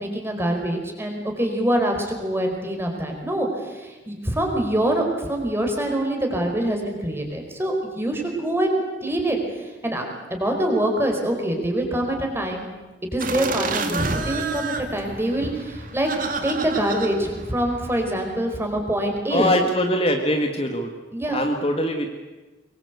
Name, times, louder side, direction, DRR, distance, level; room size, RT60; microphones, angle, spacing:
voice 1, 0.0-10.0 10.3-12.7 13.1-16.1 16.4-19.5 21.1-21.5, right 1 dB, 15° right, 2 dB, 4.7 m, -25 dB
sound 1, 13.2-18.4, right 3 dB, 45° right, 2.3 m, -30 dB
voice 2, 19.3-20.9 21.3-22.1, left 1 dB, 30° left, 4 dB, 1.8 m, -22 dB
23.5 x 22.5 x 8.2 m, 1.2 s
head